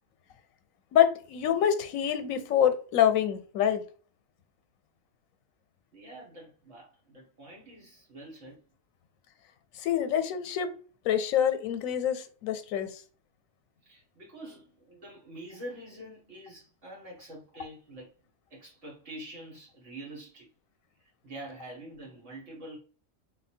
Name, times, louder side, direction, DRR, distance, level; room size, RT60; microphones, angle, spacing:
voice 1, 0.9-3.8 9.7-10.7 11.0-13.0, left 9 dB, 85° left, 1.0 m, -26 dB
voice 2, 5.9-8.6 13.8-18.1 18.5-20.5 21.0-22.8, right 1 dB, 65° right, 1.8 m, -46 dB
3.2 x 2.3 x 4.3 m
omnidirectional pair, 1.4 m